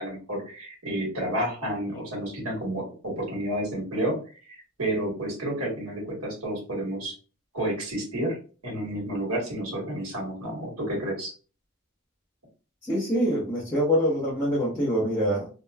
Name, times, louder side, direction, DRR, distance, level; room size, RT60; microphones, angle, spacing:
voice 1, 0.0-4.1 4.5-7.1 7.5-8.4 8.6-11.3, right 1 dB, 85° right, -2 dB, 1.2 m, -30 dB
voice 2, 12.9-15.5, equal, 10° left, -10 dB, 0.8 m, -25 dB
2.9 x 2.1 x 2.2 m, 0.37 s
head